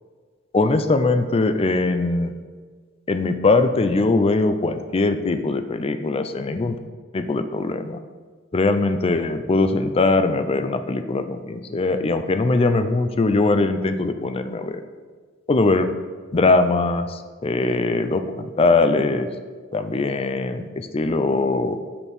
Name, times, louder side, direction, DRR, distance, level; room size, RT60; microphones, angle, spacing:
voice 1, 0.5-2.3 3.1-6.8 7.1-8.0 8.5-14.8 15.5-15.9 16.3-19.3 19.7-21.8, left 3 dB, 30° left, 9 dB, 0.4 m, -21 dB
6.3 x 5.8 x 5.4 m, 1.5 s
head